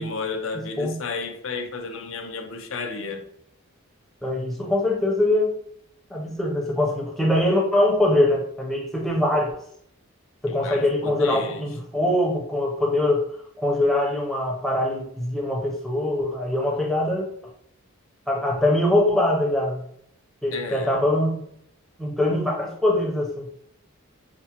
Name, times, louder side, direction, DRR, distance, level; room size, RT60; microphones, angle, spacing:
voice 1, 0.0-3.3 10.5-11.6 20.5-21.0, left 4 dB, 65° left, 5 dB, 0.5 m, -32 dB
voice 2, 0.5-1.0 4.2-5.5 6.1-9.5 10.4-13.2 13.6-17.3 18.3-19.8 20.4-21.4 22.0-23.5, left 1 dB, ahead, -1 dB, 0.5 m, -23 dB
5.7 x 2.0 x 2.8 m, 0.70 s
head